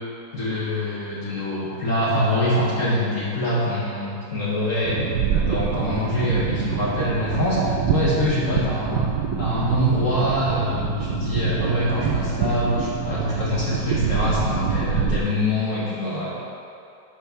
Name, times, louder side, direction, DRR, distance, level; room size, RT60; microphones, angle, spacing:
voice 1, 0.3-9.1 9.4-16.4, left 1 dB, 50° left, -7 dB, 1.5 m, -24 dB
sound 1, 4.8-15.2, right 7 dB, 70° right, 1.1 m, -25 dB
10.0 x 3.7 x 5.7 m, 2.6 s
omnidirectional pair, 2.0 m